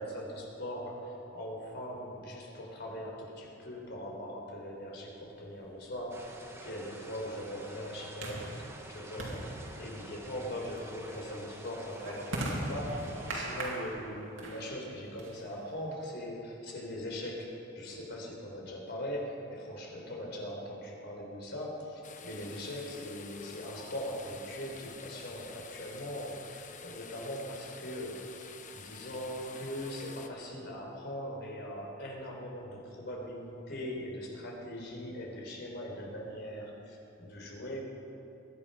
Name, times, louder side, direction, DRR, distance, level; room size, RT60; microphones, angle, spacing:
voice 1, 0.0-6.4 6.6-28.5 28.7-37.8, equal, 60° left, -1 dB, 3.8 m, -40 dB
sound 1, 5.5-15.9, right 1 dB, 90° right, 2.5 m, -41 dB
sound 2, 6.1-13.7, right 1 dB, 15° right, 1.4 m, -49 dB
sound 3, 22.0-30.3, left 6 dB, 40° left, 0.9 m, -49 dB
22.0 x 10.5 x 5.5 m, 2.9 s
head